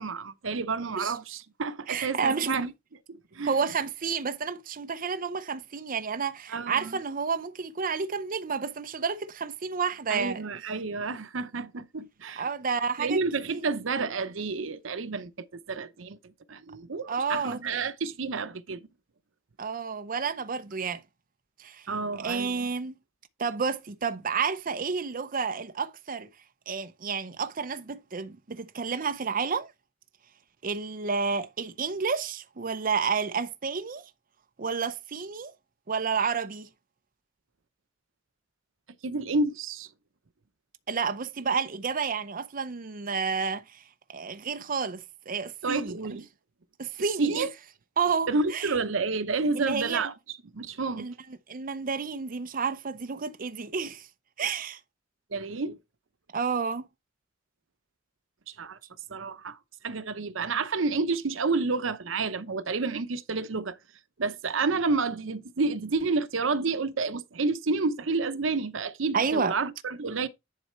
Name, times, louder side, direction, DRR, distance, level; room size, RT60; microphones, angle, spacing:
voice 1, 0.0-2.7 3.1-3.7 6.5-6.9 10.1-12.5 13.0-18.8 21.9-22.7 39.0-39.9 45.6-46.2 47.0-47.5 48.3-51.1 55.3-55.8 58.5-58.8 59.1-59.6 59.8-63.8 64.2-70.3, right 4 dB, 80° right, 0.8 m, -30 dB
voice 2, 1.9-2.6 3.4-10.4 12.4-13.2 17.1-17.8 19.6-21.0 21.6-21.8 22.2-22.9 23.4-26.3 26.7-29.7 30.6-34.0 34.6-35.5 35.9-36.7 40.9-43.8 44.1-45.9 46.8-47.5 48.0-48.8 49.5-50.0 51.0-51.1 51.5-54.1 54.4-54.8 56.3-56.8 69.1-69.5, right 5 dB, 45° right, 0.6 m, -30 dB
10.5 x 4.1 x 4.4 m
head